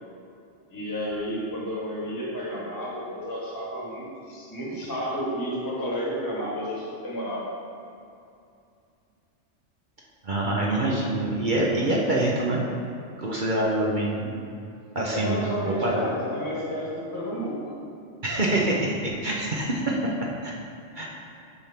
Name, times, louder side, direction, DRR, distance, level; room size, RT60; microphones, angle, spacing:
voice 1, 0.7-7.5 13.5-13.7 15.1-17.7, equal, 15° left, -5 dB, 1.4 m, -31 dB
voice 2, 10.2-12.6 13.2-14.3 14.9-16.1 18.2-20.1 20.4-20.5 20.9-21.1, right 1 dB, 45° right, -3 dB, 0.9 m, -25 dB
12.0 x 4.3 x 3.6 m, 2.5 s
omnidirectional pair, 1.3 m